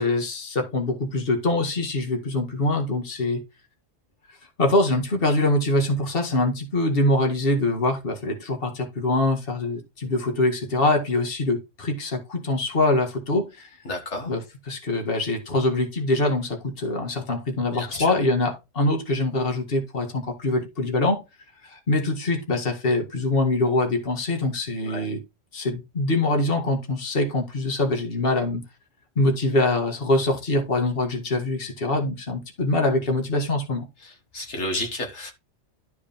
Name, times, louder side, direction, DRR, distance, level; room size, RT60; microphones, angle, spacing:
voice 1, 0.0-3.4 4.6-13.7 14.3-21.2 21.6-25.2 25.5-28.6 29.2-33.9, left 2 dB, 50° left, 2.0 m, -24 dB
voice 2, 13.9-14.3 17.7-18.1 24.9-25.0 34.3-35.3, left 1 dB, 70° left, 2.0 m, -31 dB
12.5 x 5.0 x 3.5 m
omnidirectional pair, 1.2 m